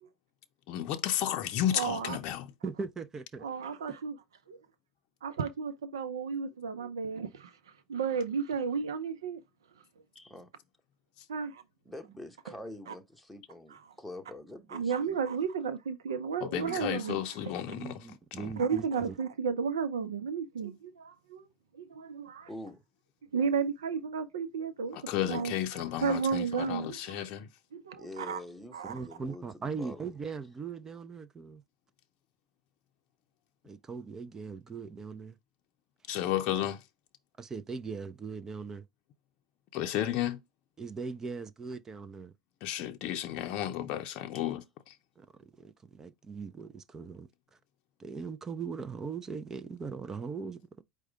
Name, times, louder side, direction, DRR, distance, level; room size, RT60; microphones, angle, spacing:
voice 1, 0.7-2.5 11.2-11.3 16.4-18.0 18.4-18.5 24.9-27.5 36.1-36.8 39.7-40.4 42.6-45.0, left 11 dB, 50° left, 0.5 m, -33 dB
voice 2, 1.7-2.2 3.4-4.1 4.5-4.6 5.2-7.6 7.9-9.4 11.3-11.6 12.9-13.0 13.7-13.9 14.7-17.2 18.6-21.4 21.7-22.5 23.3-25.0 25.3-27.3 27.7-28.4 28.7-28.9, right 6 dB, 85° right, 0.5 m, -33 dB
voice 3, 2.6-3.4 17.5-19.1 28.9-31.6 33.6-35.4 37.4-38.8 40.8-42.3 45.2-47.3 48.0-50.8, right 5 dB, 20° right, 0.5 m, -40 dB
voice 4, 10.1-10.5 11.8-15.2 22.5-22.8 28.0-29.5 29.7-30.1 44.3-44.5, left 1 dB, ahead, 1.0 m, -45 dB
4.8 x 2.2 x 4.6 m
hypercardioid pair, 95°, 2 cm